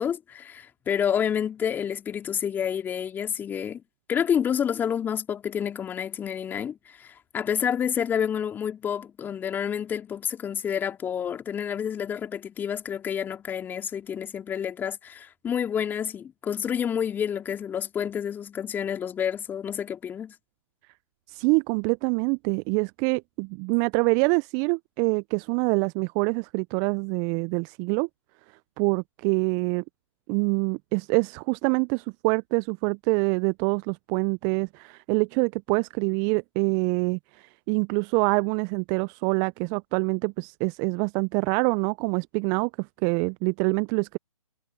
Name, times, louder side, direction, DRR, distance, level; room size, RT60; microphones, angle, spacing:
voice 1, 0.0-3.8 4.1-20.3, left 8 dB, 10° left, 3.0 m, -29 dB
voice 2, 21.3-28.1 28.8-29.8 30.3-44.2, right 34 dB, 20° right, 0.8 m, -25 dB
figure-of-eight pair, 135°, 18 cm